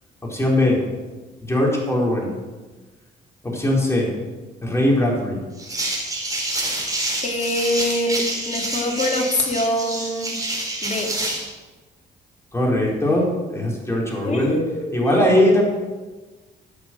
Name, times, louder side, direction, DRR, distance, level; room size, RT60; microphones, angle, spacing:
voice 1, 0.2-0.8 1.4-2.3 3.4-4.1 4.6-5.4 12.5-14.6 14.9-15.6, left 1 dB, 15° left, -3 dB, 5.2 m, -20 dB
sound 1, 5.6-11.5, right 2 dB, 20° right, 4.6 m, -27 dB
voice 2, 7.2-10.4 10.8-11.1 14.2-15.2, left 1 dB, 40° left, 0 dB, 3.3 m, -24 dB
13.0 x 8.5 x 6.6 m, 1.3 s
cardioid pair, 75°, 19 cm